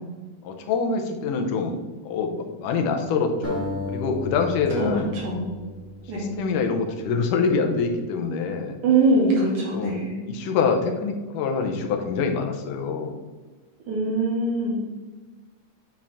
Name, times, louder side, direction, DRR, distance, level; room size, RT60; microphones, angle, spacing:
voice 1, 0.4-1.8 2.0-5.2 6.1-8.8 9.7-10.0 10.2-13.1, left 5 dB, 80° left, 4 dB, 2.3 m, -25 dB
sound 1, 3.4-6.6, left 2 dB, 5° left, 1.3 m, -34 dB
voice 2, 8.8-10.2 13.9-14.8, right 2 dB, 65° right, -5 dB, 3.6 m, -22 dB
9.0 x 4.9 x 3.5 m, 1.3 s
omnidirectional pair, 3.7 m